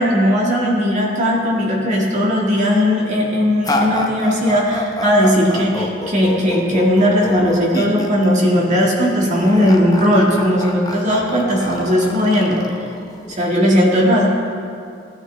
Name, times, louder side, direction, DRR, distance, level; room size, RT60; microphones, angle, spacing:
voice 1, 0.0-12.6 13.3-14.3, equal, 40° right, -3 dB, 1.8 m, -17 dB
sound 1, 3.6-13.6, left 1 dB, 20° left, 0.8 m, -27 dB
16.0 x 9.2 x 3.3 m, 2.4 s
head